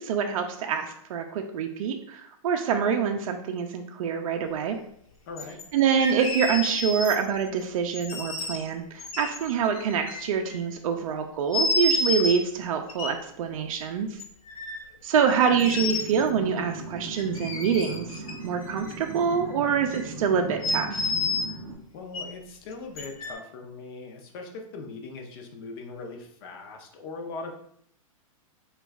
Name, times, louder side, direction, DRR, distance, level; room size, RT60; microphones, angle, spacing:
voice 1, 0.0-4.8 5.7-14.2 15.0-21.1, right 7 dB, 70° right, 4 dB, 0.4 m, -26 dB
voice 2, 5.3-5.6 21.9-27.5, left 3 dB, 40° left, 3 dB, 0.6 m, -40 dB
sound 1, 5.4-5.6 6.0-7.4 7.9-8.6 9.0-10.6 11.5-12.4 12.9-13.1 14.2-14.8 15.3-16.3 17.2-18.3 18.6-19.5 19.9-20.0 20.6-21.5 22.1-22.2 23.0-23.3, left 2 dB, 85° left, 0.7 m, -30 dB
sound 2, 15.5-21.7, right 2 dB, 15° right, 0.6 m, -38 dB
3.0 x 2.3 x 3.4 m, 0.67 s
hypercardioid pair, 155°, 18 cm